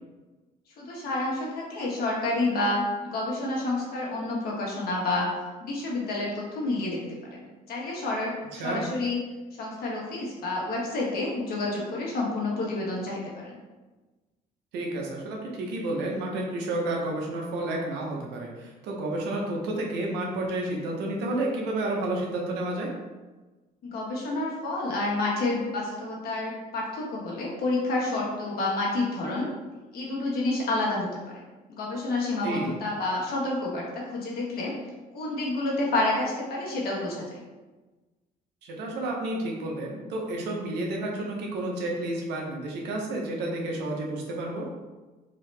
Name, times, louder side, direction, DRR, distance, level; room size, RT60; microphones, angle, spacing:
voice 1, 0.8-5.3 5.6-7.0 7.3-9.2 9.6-13.6 23.8-29.5 29.9-31.1 31.7-34.7 35.1-37.4, left 2 dB, 65° left, -4 dB, 1.4 m, -29 dB
voice 2, 8.5-8.8 14.7-22.9 32.4-32.7 38.6-44.7, right 1 dB, 90° right, -1 dB, 0.9 m, -31 dB
3.9 x 2.8 x 3.3 m, 1.2 s
cardioid pair, 110°, 17 cm